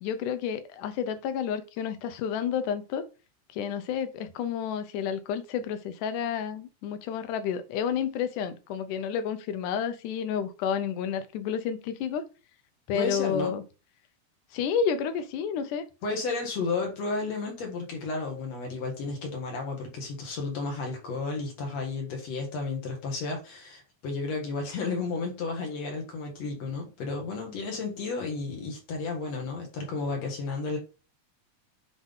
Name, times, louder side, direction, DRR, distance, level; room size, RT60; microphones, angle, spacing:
voice 1, 0.0-3.0 3.5-12.3 12.9-13.6 14.5-15.9, left 7 dB, 90° left, 2.3 m, -30 dB
voice 2, 12.9-13.6 16.0-30.8, left 3 dB, 60° left, 2.8 m, -32 dB
7.7 x 3.6 x 3.7 m
omnidirectional pair, 3.5 m